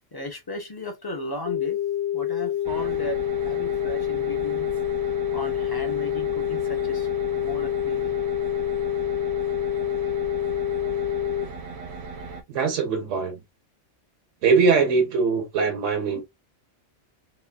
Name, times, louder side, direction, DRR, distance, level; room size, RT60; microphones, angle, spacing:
voice 1, 0.1-1.8 2.1-4.7 5.0-8.2, left 1 dB, 25° left, 0.5 m, -36 dB
sound 1, 1.5-11.5, left 11 dB, 80° left, 1.1 m, -27 dB
sound 2, 2.6-12.4, right 4 dB, 65° right, 0.8 m, -38 dB
voice 2, 12.5-13.4 14.4-16.2, right 5 dB, 85° right, 1.1 m, -21 dB
3.0 x 2.3 x 2.2 m
omnidirectional pair, 1.3 m